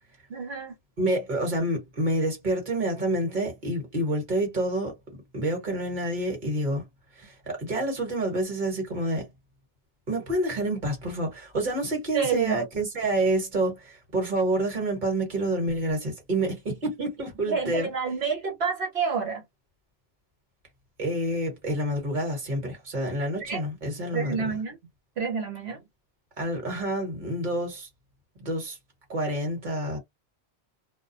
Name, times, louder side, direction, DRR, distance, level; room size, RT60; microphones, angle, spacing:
voice 1, 0.3-0.7 12.1-12.7 17.5-19.4 23.4-23.6 24.1-24.8 25.2-25.8, right 5 dB, 75° right, 1.2 m, -28 dB
voice 2, 1.0-4.9 5.3-6.8 7.2-9.3 10.1-17.9 21.0-24.6 26.4-27.9 28.4-28.8 29.1-30.0, right 1 dB, 50° right, 1.4 m, -28 dB
2.5 x 2.2 x 2.6 m
omnidirectional pair, 1.1 m